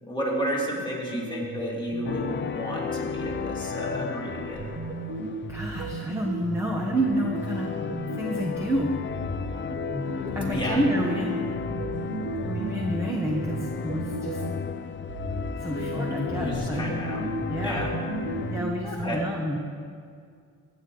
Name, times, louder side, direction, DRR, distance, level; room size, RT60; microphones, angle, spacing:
voice 1, 0.0-4.7 10.5-10.8 16.4-17.2 17.6-17.9 18.8-19.2, equal, 10° left, -4 dB, 2.9 m, -32 dB
sound 1, 1.1-2.7 3.1-8.7 9.1-14.7 15.1-19.1, right 3 dB, 35° right, 1.3 m, -35 dB
sound 2, 2.0-18.6, left 6 dB, 30° left, 0.5 m, -34 dB
voice 2, 5.5-7.7 8.2-9.0 10.3-11.8 12.4-14.4 15.6-16.8 17.5-17.9 18.5-19.6, equal, 5° right, 0 dB, 1.1 m, -29 dB
15.5 x 9.7 x 3.9 m, 2.2 s
cardioid pair, 100°, 40 cm